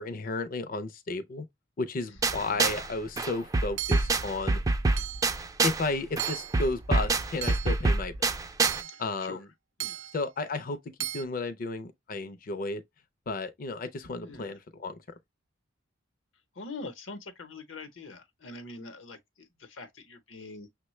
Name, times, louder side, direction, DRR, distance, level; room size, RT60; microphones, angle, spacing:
voice 1, 0.0-1.5 1.8-4.6 5.6-8.4 8.8-9.5 10.1-10.8 11.1-12.8 13.3-15.0, left 3 dB, 45° left, 0.5 m, -33 dB
sound 1, 2.2-2.9 3.2-5.9 6.2-8.8, right 3 dB, 20° right, 0.3 m, -26 dB
Hammer / Chink clink, 3.8-4.2 5.0-5.4 6.2-6.6 7.4-7.8 8.6-9.1 9.8-10.2 11.0-11.2, right 15 dB, 85° right, 0.4 m, -35 dB
voice 2, 8.9-9.4 9.8-10.1 14.2-14.6 16.5-20.7, left 3 dB, 75° left, 0.9 m, -44 dB
6.2 x 2.2 x 3.0 m
head